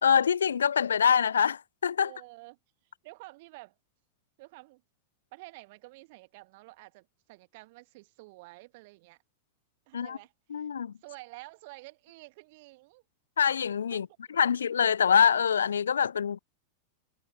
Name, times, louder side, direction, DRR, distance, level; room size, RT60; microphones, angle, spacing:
voice 1, 0.0-2.1 9.9-10.2 10.5-10.9 13.4-14.1 14.4-16.4, left 7 dB, 70° left, 0.3 m, -24 dB
voice 2, 2.0-2.6 3.0-3.8 4.4-4.8 5.3-9.2 9.9-10.7 11.0-13.0 13.9-14.0, right 23 dB, 50° right, 1.5 m, -50 dB
figure-of-eight pair, 90°, 0 cm